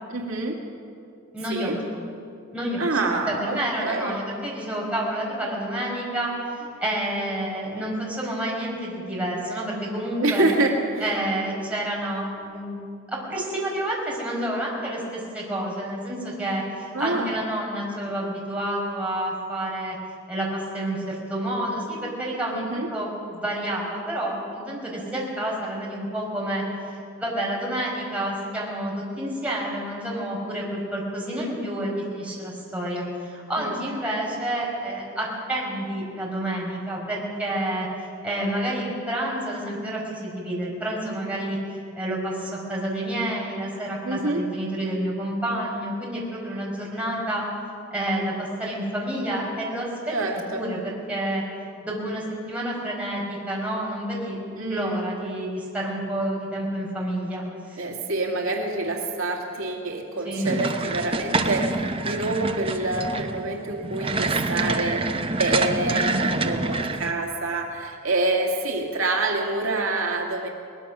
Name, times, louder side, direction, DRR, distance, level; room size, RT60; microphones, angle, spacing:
voice 1, 0.1-0.6 1.5-1.8 2.8-4.1 10.2-11.1 16.9-17.3 22.5-22.9 33.6-33.7 44.0-44.4 50.1-50.6 54.6-55.0 57.8-70.5, right 2 dB, 75° right, 1 dB, 2.2 m, -27 dB
voice 2, 1.3-2.0 2.5-2.9 3.2-10.4 11.0-12.8 13.1-20.0 20.3-47.4 47.9-49.9 50.5-51.4 51.8-54.4 54.7-57.8 60.2-60.5, right 1 dB, 5° right, -4 dB, 4.9 m, -29 dB
sound 1, 60.4-67.1, right 3 dB, 25° right, 0.9 m, -26 dB
22.0 x 20.0 x 6.2 m, 2.6 s
head